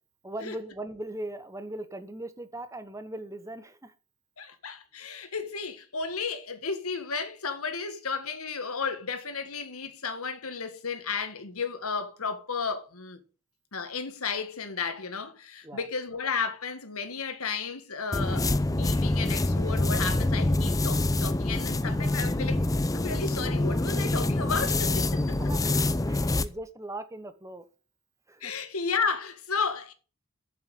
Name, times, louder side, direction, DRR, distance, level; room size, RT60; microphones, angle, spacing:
voice 1, 0.2-3.9 15.6-15.9 25.2-25.6 26.0-27.6 28.3-28.6, right 1 dB, 15° right, 1.0 m, -39 dB
voice 2, 4.4-13.2 13.7-25.2 28.4-29.9, left 5 dB, 90° left, 1.7 m, -33 dB
sound 1, 18.1-26.5, left 2 dB, 15° left, 0.5 m, -26 dB
7.5 x 7.3 x 7.9 m
head